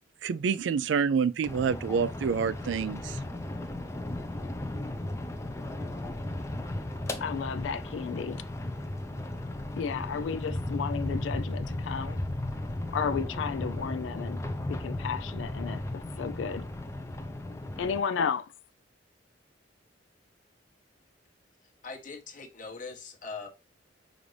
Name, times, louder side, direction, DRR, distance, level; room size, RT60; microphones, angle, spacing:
voice 1, 0.2-3.2, right 6 dB, 75° right, 0.3 m, -27 dB
sound 1, 1.5-18.0, left 1 dB, 15° left, 0.5 m, -35 dB
voice 2, 7.2-8.4 9.8-12.2 12.9-14.4 14.7-16.6 17.8-18.5, left 6 dB, 75° left, 0.3 m, -33 dB
voice 3, 21.8-23.5, left 4 dB, 45° left, 1.0 m, -41 dB
5.0 x 2.6 x 3.2 m
head